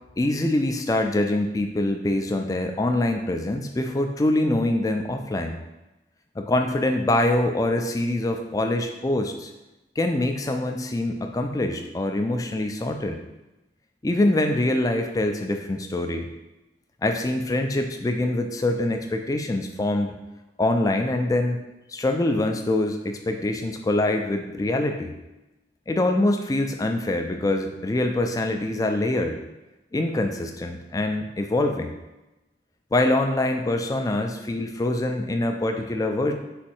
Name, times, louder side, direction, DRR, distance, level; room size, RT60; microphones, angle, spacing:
voice 1, 0.2-5.6 6.4-9.5 10.0-13.2 14.0-16.3 17.0-20.1 20.6-21.6 21.9-25.1 25.9-29.4 29.9-31.9 32.9-36.3, left 1 dB, 20° left, 5 dB, 0.3 m, -24 dB
4.2 x 2.7 x 4.3 m, 1.0 s
head